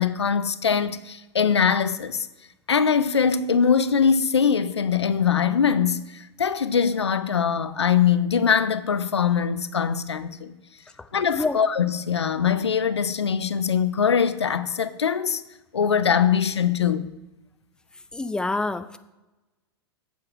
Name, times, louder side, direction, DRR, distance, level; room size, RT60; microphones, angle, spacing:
voice 1, 0.0-2.3 2.7-10.5 11.1-15.4 15.7-17.1, left 7 dB, 80° left, 0.5 m, -22 dB
voice 2, 18.1-19.0, left 3 dB, 5° left, 0.5 m, -27 dB
7.9 x 7.6 x 4.5 m
figure-of-eight pair, 90°, 14 cm